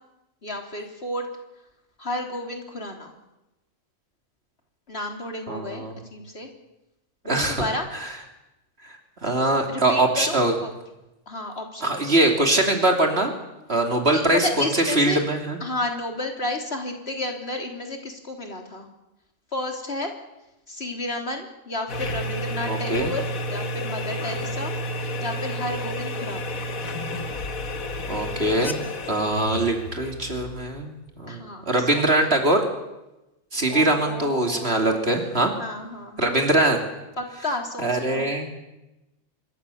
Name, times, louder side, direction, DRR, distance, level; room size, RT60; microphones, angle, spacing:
voice 1, 0.4-1.3 2.0-3.1 4.9-6.5 7.2-7.9 9.7-10.7 11.3-12.2 14.1-15.2 15.6-18.9 19.5-20.1 20.7-26.6 31.3-32.3 33.7-34.8 35.6-36.4 37.2-38.3, left 2 dB, 50° left, 3 dB, 3.7 m, -32 dB
voice 2, 5.5-5.9 7.3-7.7 9.2-10.5 11.8-13.3 13.7-14.5 14.9-15.6 22.7-23.1 28.1-32.6 33.5-35.5 36.2-36.8 37.8-38.5, right 2 dB, 50° right, 3 dB, 3.2 m, -22 dB
sound 1, 21.9-31.0, left 1 dB, 90° left, 2.0 m, -31 dB
25.5 x 22.5 x 7.1 m, 0.96 s
omnidirectional pair, 1.4 m